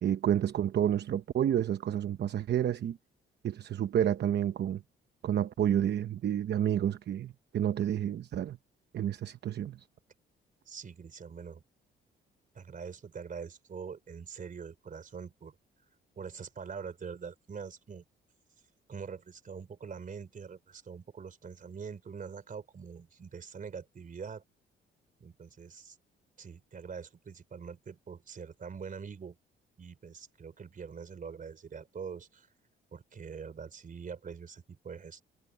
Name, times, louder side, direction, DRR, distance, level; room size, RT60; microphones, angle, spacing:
voice 1, 0.0-3.0 3.4-4.8 5.2-8.6 8.9-9.9, right 10 dB, 60° right, 0.9 m, -29 dB
voice 2, 10.7-11.6 12.5-15.5 16.2-18.0 18.9-24.4 25.2-26.0 26.4-29.4 29.8-32.5 32.9-35.2, right 6 dB, 45° right, 3.8 m, -44 dB
cardioid pair, 90°, 20 cm